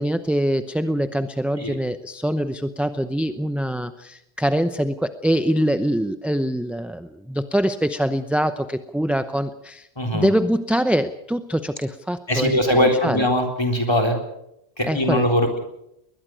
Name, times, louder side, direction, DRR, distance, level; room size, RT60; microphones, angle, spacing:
voice 1, 0.0-9.9 10.1-13.2 14.9-15.3, equal, ahead, 9 dB, 0.6 m, -24 dB
voice 2, 10.0-10.3 12.3-14.2 14.8-15.6, left 1 dB, 25° left, 5 dB, 4.0 m, -21 dB
21.5 x 20.5 x 6.3 m, 0.81 s
omnidirectional pair, 1.1 m